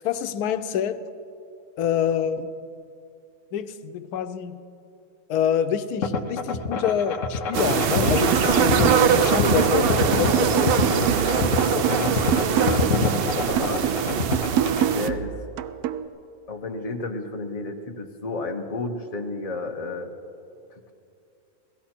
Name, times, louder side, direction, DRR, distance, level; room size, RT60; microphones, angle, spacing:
voice 1, 0.0-1.0 1.8-2.5 3.5-4.6 5.3-12.4 14.1-14.4, left 8 dB, 90° left, 11 dB, 1.2 m, -27 dB
sound 1, 6.0-14.9, left 4 dB, 60° left, 1.1 m, -26 dB
sound 2, 7.5-15.1, right 8 dB, 70° right, 0.5 m, -23 dB
sound 3, 8.1-9.2 9.6-13.1 13.6-16.1, right 10 dB, 90° right, 1.1 m, -27 dB
voice 2, 12.6-13.1 13.4-13.8 14.9-15.4 16.5-20.1 20.7-20.9, left 3 dB, 30° left, 3 dB, 1.0 m, -32 dB
17.0 x 15.0 x 4.4 m, 2.6 s
omnidirectional pair, 1.6 m